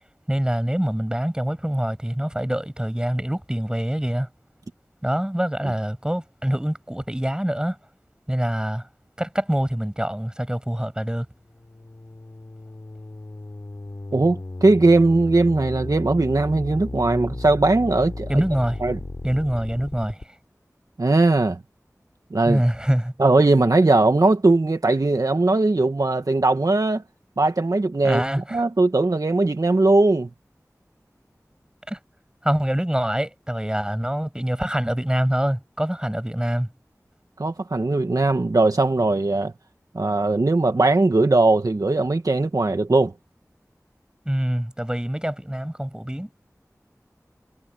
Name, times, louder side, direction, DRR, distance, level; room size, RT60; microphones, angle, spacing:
voice 1, 0.3-4.3 5.0-7.8 8.3-8.9 9.2-11.3 18.3-18.8 19.2-20.3 22.4-23.1 28.0-28.6 31.9-32.0 32.4-36.7 44.3-46.3, equal, 15° right, 7.0 m, -25 dB
sound 1, 11.5-20.2, left 2 dB, 65° left, 4.7 m, -35 dB
voice 2, 14.1-18.4 18.8-19.0 21.0-21.6 22.3-22.6 23.2-27.0 27.4-30.3 37.4-39.5 39.9-43.1, right 2 dB, 75° right, 1.6 m, -19 dB
wide cardioid pair, 45°, 6 cm